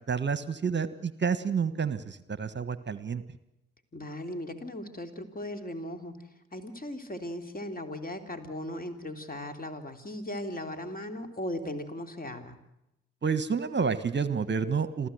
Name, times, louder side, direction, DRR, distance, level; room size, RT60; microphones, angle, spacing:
voice 1, 0.1-3.2 13.2-15.1, right 6 dB, 35° right, 13 dB, 1.4 m, -29 dB
voice 2, 3.9-6.2 6.5-12.6, left 1 dB, 25° left, 7 dB, 3.3 m, -37 dB
27.0 x 15.5 x 8.0 m, 0.86 s
hypercardioid pair, 50°, 33 cm